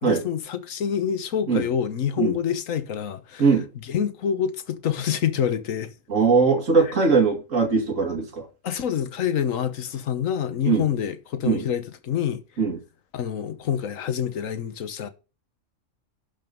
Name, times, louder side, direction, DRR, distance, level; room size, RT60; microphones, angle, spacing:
voice 1, 0.0-5.9 8.6-12.4 13.1-15.1, left 8 dB, 80° left, 1.4 m, -27 dB
voice 2, 6.1-8.5 10.6-10.8 11.5-11.6 12.6-12.8, right 5 dB, 70° right, 2.5 m, -20 dB
11.5 x 5.4 x 5.3 m
omnidirectional pair, 1.4 m